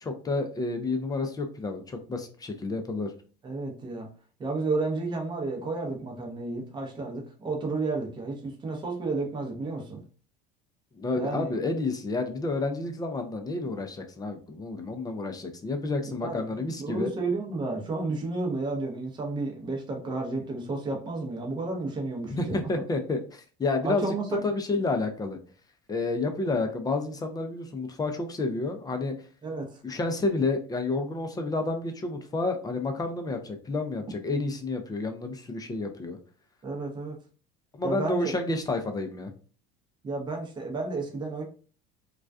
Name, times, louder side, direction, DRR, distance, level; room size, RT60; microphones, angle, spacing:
voice 1, 0.0-3.1 11.0-17.1 22.3-24.1 24.4-25.4 25.9-29.1 29.8-36.2 37.8-39.3, left 3 dB, 20° left, 5 dB, 0.4 m, -30 dB
voice 2, 3.4-4.1 4.4-10.0 11.1-11.5 16.0-16.5 16.8-22.7 23.8-24.4 29.4-29.8 36.6-37.2 37.8-38.4 40.0-41.4, right 3 dB, 20° right, 1 dB, 0.7 m, -32 dB
2.3 x 2.2 x 2.4 m, 0.38 s
supercardioid pair, 105°, 21 cm